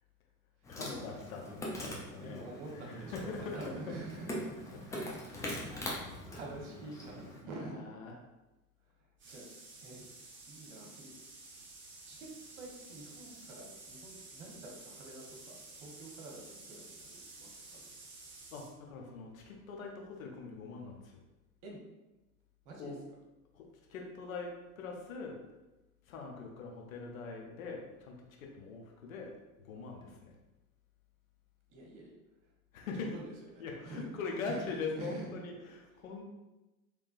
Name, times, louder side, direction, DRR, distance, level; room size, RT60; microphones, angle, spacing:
Insect, 0.6-7.4, left 1 dB, 10° left, 0.3 m, -42 dB
voice 1, 0.7-4.0 4.7-4.8 5.1-5.2 6.2-6.3 7.4-8.2 18.5-21.2 22.8-23.1 23.5-25.4 26.0-29.3 29.6-30.4 32.7-33.2 33.6-36.2, left 4 dB, 70° left, 1 dB, 0.8 m, -42 dB
voice 2, 2.0-4.4 4.9-5.1 5.6-6.0 6.3-7.9 9.0-9.4 9.8-10.0 10.5-11.1 12.1-12.3 12.5-17.9 21.6-21.8 22.6-22.9 31.7-32.1 33.0-34.1 34.5-35.4, right 2 dB, 55° right, -1 dB, 1.0 m, -47 dB
sound 1, 9.2-18.7, right 3 dB, 25° right, 1.0 m, -52 dB
3.4 x 3.1 x 2.4 m, 1.0 s
figure-of-eight pair, 75°, 43 cm